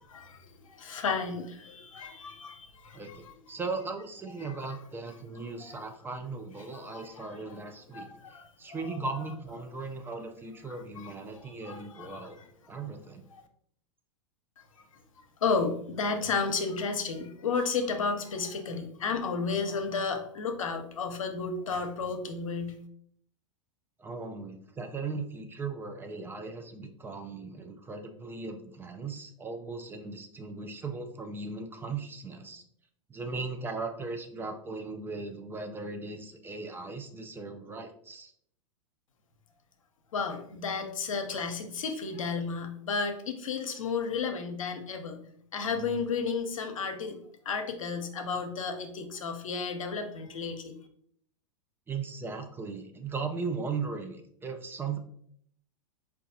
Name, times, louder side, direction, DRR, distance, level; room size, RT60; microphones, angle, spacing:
voice 1, 0.1-3.3 4.4-4.5 5.6-5.8 6.7-7.6 7.9-8.4 8.7-8.8 11.0-12.5 13.3-13.4 15.4-22.8 40.1-45.2 45.5-47.2 47.5-50.7, left 5 dB, 85° left, 6 dB, 0.6 m, -33 dB
voice 2, 2.9-8.1 8.6-12.4 12.7-13.2 24.0-32.6 33.1-38.3 51.9-55.0, right 4 dB, 15° right, 5 dB, 0.4 m, -38 dB
4.6 x 2.3 x 2.6 m, 0.66 s
hypercardioid pair, 110°, 17 cm